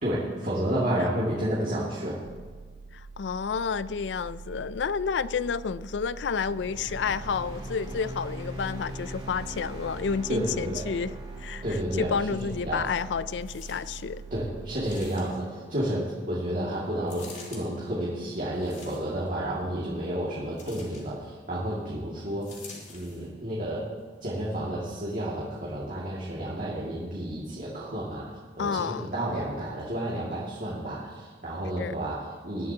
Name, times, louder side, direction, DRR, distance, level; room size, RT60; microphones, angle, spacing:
voice 1, 0.0-2.2 10.3-10.8 11.6-12.8 14.3-22.5 22.9-23.9 24.2-32.7, right 1 dB, 50° right, 2.3 m, -31 dB
sound 1, 2.2-15.1, right 4 dB, 85° right, 0.6 m, -43 dB
voice 2, 2.9-11.1 11.4-11.6 12.0-14.2 28.6-29.1 31.8-32.0, left 6 dB, 75° left, 0.4 m, -30 dB
sound 2, 6.4-16.9, equal, 30° right, 3.0 m, -43 dB
sound 3, 13.4-14.1 14.8-15.5 17.1-17.6 18.5-19.3 20.6-21.1 22.4-23.3 24.0-24.1, left 4 dB, 45° left, 3.2 m, -47 dB
20.5 x 11.5 x 2.9 m
head